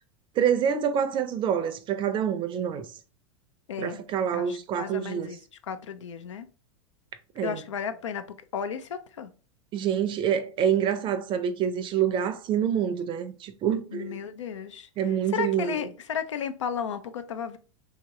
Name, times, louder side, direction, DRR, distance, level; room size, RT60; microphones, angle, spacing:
voice 1, 0.4-2.9 3.8-5.3 7.4-7.6 9.7-14.2 15.0-15.8, right 8 dB, 35° right, 0.5 m, -26 dB
voice 2, 3.7-4.0 4.3-5.4 5.6-6.5 7.4-8.2 8.5-9.3 13.9-14.9 15.3-17.6, left 7 dB, 80° left, 0.5 m, -33 dB
3.0 x 2.8 x 3.6 m
hypercardioid pair, 95°, 15 cm